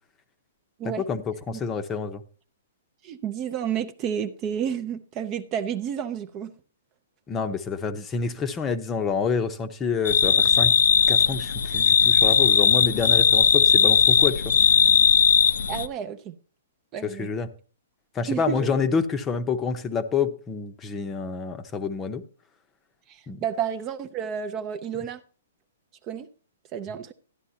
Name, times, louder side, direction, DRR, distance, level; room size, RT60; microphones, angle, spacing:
voice 1, 0.8-2.2 7.3-10.7 11.1-14.5 17.0-17.5 18.1-22.2 23.3-23.4, left 5 dB, 15° left, 0.7 m, -28 dB
voice 2, 3.0-6.5 15.7-16.3 16.9-17.3 18.3-18.7 23.1-25.2 26.1-26.3 26.7-27.1, right 8 dB, 25° right, 0.5 m, -30 dB
sound 1, 10.0-15.9, left 7 dB, 80° left, 0.6 m, -18 dB
13.0 x 10.5 x 2.7 m
hypercardioid pair, 165°, 0 cm